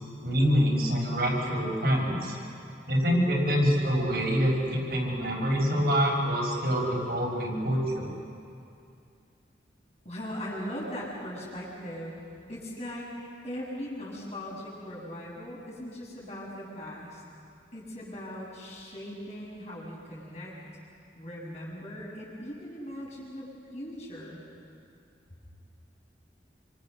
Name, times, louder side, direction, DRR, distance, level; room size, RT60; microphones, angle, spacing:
voice 1, 0.2-2.4 2.9-8.1, equal, 60° right, -2 dB, 6.0 m, -26 dB
voice 2, 10.0-12.2 12.5-13.1 13.4-17.2 17.7-20.5 21.1-23.5 23.7-24.4, equal, 40° left, -5 dB, 7.8 m, -39 dB
29.5 x 26.5 x 6.7 m, 2.5 s
head